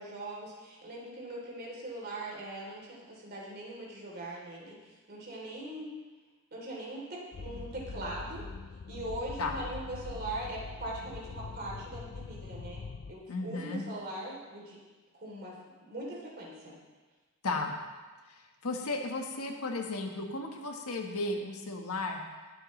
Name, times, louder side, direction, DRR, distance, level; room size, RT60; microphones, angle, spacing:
voice 1, 0.0-5.9 6.5-8.4 8.9-12.8 13.1-14.8 15.1-15.6 15.8-16.8, right 1 dB, 45° right, -3 dB, 3.3 m, -41 dB
sound 1, 7.3-13.1, left 4 dB, 50° left, 0.4 m, -43 dB
voice 2, 13.3-13.8 17.4-17.8 18.6-22.2, left 2 dB, 75° left, 2 dB, 1.4 m, -34 dB
20.5 x 7.8 x 3.2 m, 1.3 s
head